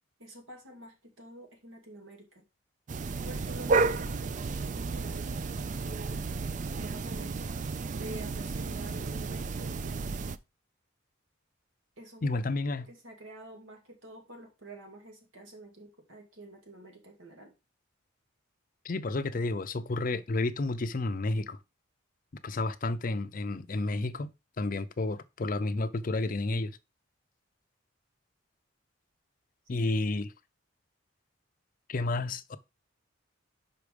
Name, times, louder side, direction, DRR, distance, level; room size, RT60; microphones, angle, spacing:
voice 1, 0.2-2.4 3.2-6.3 6.8-7.5 8.0-10.0 12.0-12.4 12.7-17.5 29.8-29.9, right 1 dB, 80° right, 2.5 m, -48 dB
sound 1, 2.9-10.4, right 4 dB, 40° right, 0.4 m, -32 dB
voice 2, 12.2-12.9 18.8-21.6 22.4-24.3 24.6-26.8 29.7-30.3 31.9-32.6, left 2 dB, 40° left, 0.5 m, -31 dB
5.8 x 4.9 x 5.1 m
head